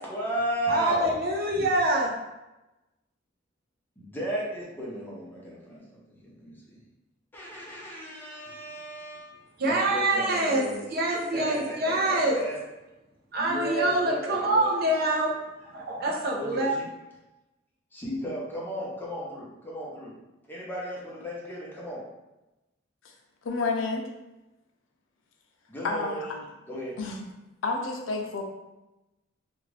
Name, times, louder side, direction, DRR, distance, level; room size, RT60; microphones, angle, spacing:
voice 1, 0.0-1.1 4.0-6.8 7.3-9.3 9.6-10.9 11.3-12.6 13.4-14.7 16.3-16.9 17.9-20.1 20.5-22.0 25.7-27.0, equal, 10° left, -5 dB, 0.7 m, -35 dB
voice 2, 0.7-2.1 9.6-10.6 10.9-12.4 13.3-15.3 15.6-16.7, right 1 dB, 55° right, -1 dB, 0.6 m, -25 dB
voice 3, 23.4-24.1 25.8-26.3 27.0-27.2 27.6-28.4, left 3 dB, 75° left, 2 dB, 0.5 m, -29 dB
2.6 x 2.4 x 3.2 m, 1.0 s
head